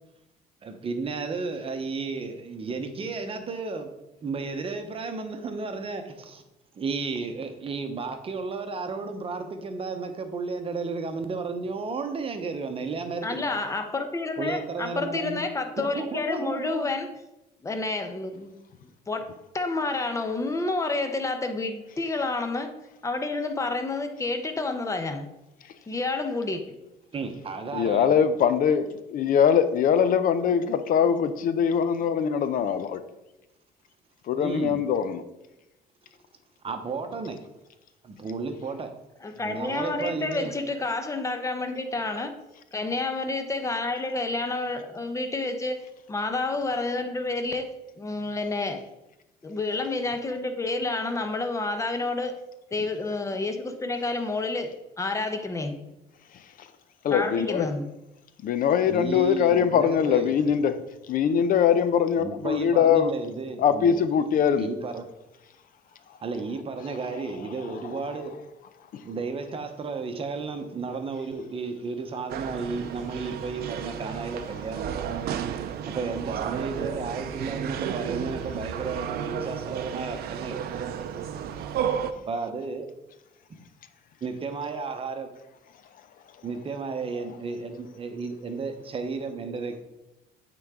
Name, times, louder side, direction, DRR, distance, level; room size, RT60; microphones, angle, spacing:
voice 1, 0.6-3.9 4.2-6.4 6.7-13.5 14.4-15.4 15.8-16.9 27.1-28.2 34.4-34.8 36.6-37.4 38.0-38.9 39.4-40.5 58.9-60.4 62.2-64.0 64.4-65.1 66.2-68.3 69.0-74.9 75.8-80.7 82.1-82.9 84.2-85.3 86.4-89.8, right 4 dB, 35° right, 7 dB, 0.9 m, -33 dB
voice 2, 13.2-17.1 17.6-18.5 19.1-19.3 19.5-22.7 23.0-25.3 25.9-26.8 39.2-42.3 42.7-45.8 46.1-47.7 48.0-48.8 49.4-52.3 52.7-55.8 57.1-57.9, left 3 dB, 20° left, 7 dB, 0.8 m, -29 dB
voice 3, 27.7-33.0 34.3-35.2 57.0-57.7 58.4-60.8 61.1-63.1 63.6-64.7, left 8 dB, 55° left, 11 dB, 0.6 m, -22 dB
sound 1, 72.3-82.1, right 8 dB, 70° right, 0.5 m, -32 dB
8.7 x 3.9 x 3.6 m, 0.93 s
cardioid pair, 110°, 17 cm